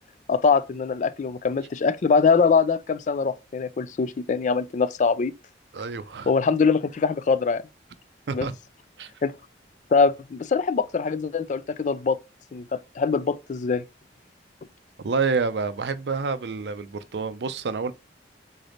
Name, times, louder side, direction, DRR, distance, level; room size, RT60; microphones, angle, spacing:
voice 1, 0.3-5.3 6.3-7.6 8.3-8.5 9.2-9.3 9.9-12.2 12.5-13.8, left 5 dB, 45° left, 0.3 m, -23 dB
voice 2, 5.7-6.3 8.3-8.6 9.0-9.1 15.0-17.9, right 4 dB, 70° right, 0.5 m, -28 dB
3.9 x 3.4 x 3.8 m
head